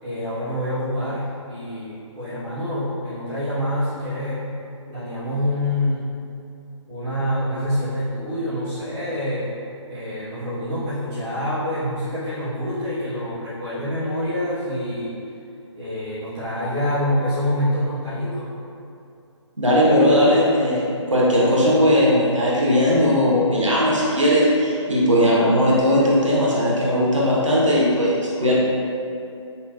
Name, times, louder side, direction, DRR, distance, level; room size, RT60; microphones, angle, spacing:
voice 1, 0.0-4.5 4.9-6.1 6.9-9.5 9.9-15.1 15.7-18.5, left 1 dB, 5° right, -15 dB, 0.3 m, -26 dB
voice 2, 19.6-28.6, equal, 75° right, -5 dB, 0.9 m, -18 dB
5.4 x 2.2 x 2.3 m, 2.6 s
figure-of-eight pair, 145°, 16 cm